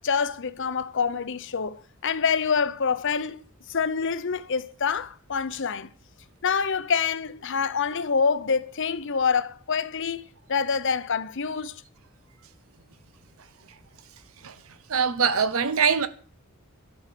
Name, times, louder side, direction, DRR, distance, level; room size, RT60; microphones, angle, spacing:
voice 1, 0.0-3.4 3.7-5.9 6.4-11.8, left 6 dB, 60° left, 0.8 m, -26 dB
voice 2, 14.9-16.1, right 6 dB, 80° right, 0.9 m, -22 dB
12.0 x 6.5 x 8.5 m
head